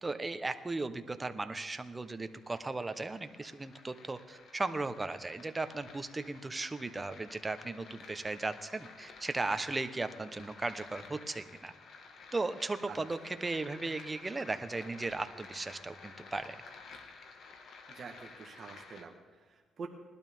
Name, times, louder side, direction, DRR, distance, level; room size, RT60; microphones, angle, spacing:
voice 1, 0.0-11.7 12.3-16.6, right 3 dB, 20° right, 10 dB, 0.9 m, -36 dB
sound 1, 1.9-19.0, left 4 dB, 65° left, 1.7 m, -53 dB
voice 2, 17.9-19.9, right 5 dB, 50° right, 1 dB, 1.5 m, -46 dB
20.0 x 12.0 x 3.6 m, 1.5 s
cardioid pair, 90°, 0 cm